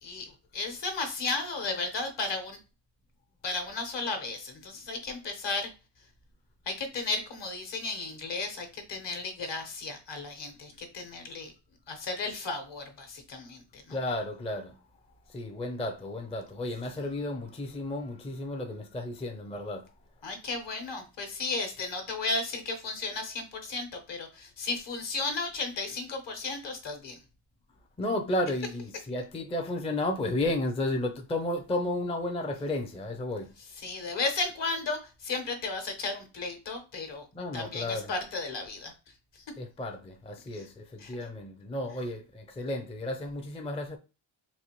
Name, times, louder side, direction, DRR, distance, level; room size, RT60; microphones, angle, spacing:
voice 1, 0.0-2.6 3.4-5.7 6.6-11.5 11.9-14.0 17.0-17.1 20.2-27.2 33.7-37.2 37.5-38.9 39.3-39.4 40.5-40.7 41.0-41.3, left 3 dB, 60° left, 1.1 m, -34 dB
voice 2, 13.9-14.8 15.3-19.8 28.0-33.5 37.3-38.1 39.6-44.0, left 1 dB, 15° left, 0.4 m, -33 dB
4.1 x 2.6 x 2.9 m
wide cardioid pair, 115°, 49 cm